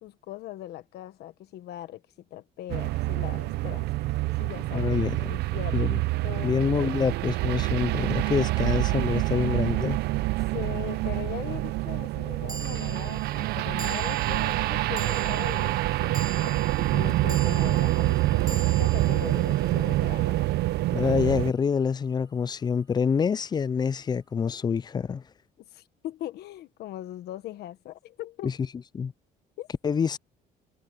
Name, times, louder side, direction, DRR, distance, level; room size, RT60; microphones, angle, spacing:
voice 1, 0.0-2.0 2.3-4.9 5.3-6.6 10.5-20.5 25.6-28.5 29.6-29.7, left 14 dB, 75° left, 1.4 m, -40 dB
sound 1, 2.7-21.5, right 18 dB, 75° right, 0.6 m, -26 dB
voice 2, 4.7-5.4 5.7-6.0 6.4-10.0 20.9-25.2 28.4-28.5 28.9-29.1 29.8-30.2, left 6 dB, 25° left, 0.4 m, -26 dB
sound 2, 10.4-10.5 12.5-20.9, right 4 dB, 20° right, 4.7 m, -43 dB
cardioid pair, 110°, 17 cm